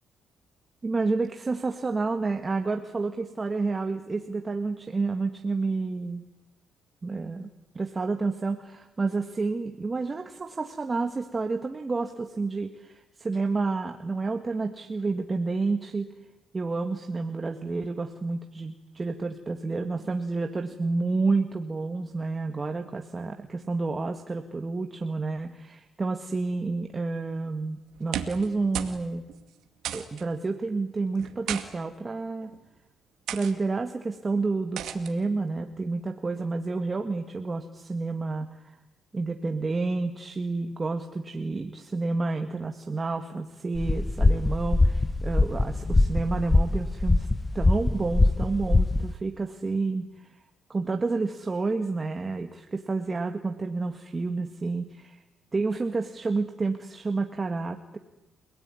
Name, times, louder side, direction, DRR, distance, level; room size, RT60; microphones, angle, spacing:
voice 1, 0.8-6.3 7.0-7.5 7.8-16.1 16.5-29.2 29.9-32.5 33.3-38.8 39.1-47.3 47.5-50.3 50.7-55.2 55.5-58.0, right 3 dB, 30° right, 5 dB, 1.8 m, -30 dB
sound 1, 27.9-28.5 28.7-29.0 29.3-29.4 29.8-30.2 31.2-31.6 32.4-32.6 33.3-33.5 34.8-35.1, right 11 dB, 80° right, 2.2 m, -34 dB
sound 2, 43.8-49.1, left 2 dB, 20° left, 0.9 m, -23 dB
29.5 x 18.0 x 9.8 m, 0.98 s
cardioid pair, 90°, 0 cm